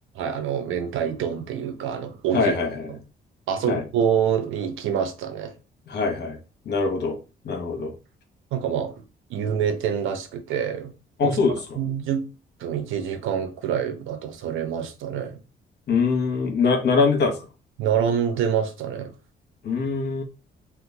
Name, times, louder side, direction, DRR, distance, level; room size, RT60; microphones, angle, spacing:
voice 1, 0.1-2.5 2.9-3.0 3.5-5.5 8.5-8.9 9.3-10.9 11.2-11.4 11.8-12.3 12.6-15.4 17.8-19.1, right 8 dB, 85° right, 0.6 m, -26 dB
voice 2, 2.3-2.9 3.7-3.8 5.9-6.4 6.7-7.2 7.4-7.9 11.2-11.6 15.9-17.3 19.6-20.2, left 4 dB, 55° left, 1.0 m, -22 dB
2.9 x 2.3 x 3.6 m
cardioid pair, 90°, 20 cm